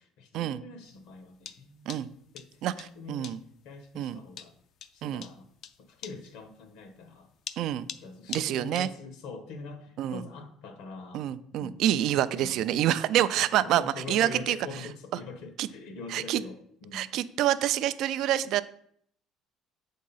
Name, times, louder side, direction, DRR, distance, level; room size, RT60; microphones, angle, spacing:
voice 1, 0.0-1.9 2.3-3.3 3.6-4.5 4.9-5.5 5.9-7.3 8.0-12.8 13.3-17.1, left 4 dB, 70° left, 8 dB, 1.1 m, -44 dB
sound 1, 0.9-8.9, left 8 dB, 45° left, 0.4 m, -44 dB
voice 2, 3.1-3.4 4.0-4.2 5.0-5.2 7.6-7.9 8.3-8.9 10.0-10.2 11.1-13.8 14.1-14.6 15.6-15.7 16.1-16.4 16.9-18.6, right 12 dB, 55° right, 14 dB, 0.3 m, -27 dB
7.6 x 3.7 x 5.5 m, 0.67 s
cardioid pair, 160°, 0 cm